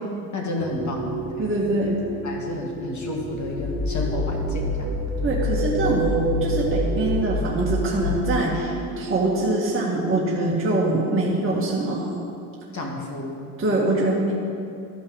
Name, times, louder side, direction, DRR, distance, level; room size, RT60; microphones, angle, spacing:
voice 1, 0.3-1.5 2.2-5.0 12.7-13.5, left 2 dB, 40° left, 0 dB, 2.2 m, -31 dB
sound 1, 0.6-11.6, right 5 dB, 90° right, 0.9 m, -32 dB
voice 2, 1.4-2.0 5.2-12.2 13.6-14.3, right 2 dB, 25° right, -5 dB, 1.9 m, -24 dB
sound 2, 3.3-8.8, left 3 dB, 10° left, 1.2 m, -27 dB
13.5 x 5.3 x 5.4 m, 2.5 s
hypercardioid pair, 70°, 46 cm